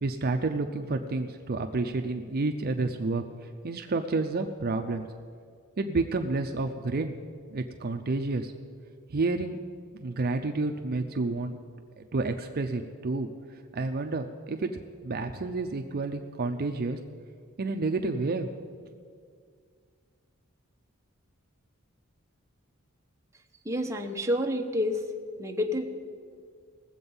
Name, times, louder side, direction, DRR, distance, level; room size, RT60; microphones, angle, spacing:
voice 1, 0.0-3.2 3.6-5.1 5.8-7.1 7.5-8.5 9.1-9.5 9.9-11.6 12.0-13.3 13.7-14.7 15.0-17.0 17.6-18.5, right 3 dB, 45° right, 5 dB, 0.5 m, -30 dB
voice 2, 23.6-25.0 25.4-25.8, left 1 dB, 15° right, 2 dB, 0.9 m, -28 dB
19.0 x 7.9 x 5.5 m, 2.1 s
head